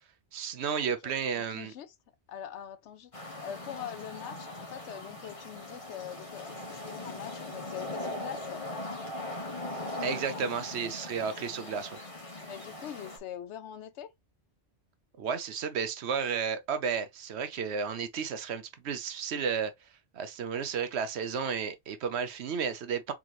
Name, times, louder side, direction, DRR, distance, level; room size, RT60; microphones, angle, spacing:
voice 1, 0.3-1.7 10.0-12.0 15.2-19.7 20.1-23.1, right 6 dB, 75° right, 1.0 m, -32 dB
voice 2, 1.0-1.9 2.3-8.7 12.4-14.1, left 9 dB, 85° left, 0.9 m, -43 dB
sound 1, 3.1-13.2, left 1 dB, 30° left, 1.2 m, -40 dB
3.8 x 3.7 x 3.0 m
omnidirectional pair, 1.1 m